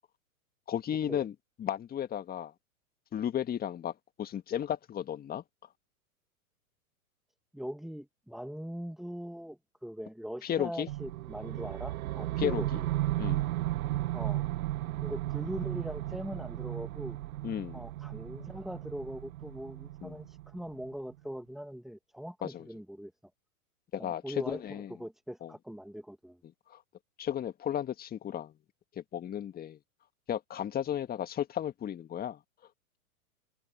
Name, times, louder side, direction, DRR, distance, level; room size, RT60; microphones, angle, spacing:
voice 1, 0.7-1.3 1.6-2.5 3.1-5.4 10.4-10.9 12.4-12.8 13.2-13.4 17.4-17.8 20.0-20.2 22.4-22.7 23.9-24.9 25.4-25.5 26.7-26.8 27.2-28.5 28.9-29.8 30.3-32.4, left 10 dB, 20° left, 1.7 m, -34 dB
voice 2, 7.5-12.9 14.1-14.4 15.0-17.2 17.7-23.1 24.0-26.4, equal, ahead, 1.9 m, -41 dB
sound 1, 10.9-20.9, right 16 dB, 70° right, 0.6 m, -35 dB
hypercardioid pair, 120°, 44 cm